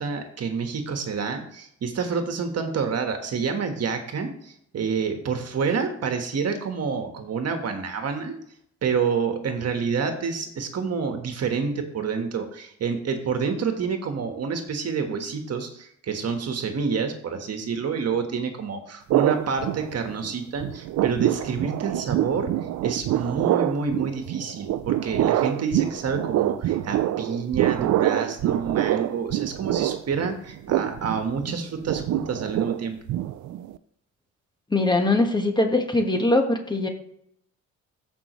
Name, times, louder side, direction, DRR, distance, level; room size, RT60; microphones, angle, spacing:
voice 1, 0.0-8.3 8.8-22.5 22.8-33.0, right 5 dB, 55° right, 5 dB, 1.5 m, -28 dB
sound 1, 19.1-20.3 20.6-33.8, right 13 dB, 70° right, 0.5 m, -26 dB
voice 2, 34.7-36.9, left 2 dB, 15° left, 4 dB, 1.4 m, -21 dB
14.0 x 5.5 x 3.1 m, 0.70 s
cardioid pair, 90°, 30 cm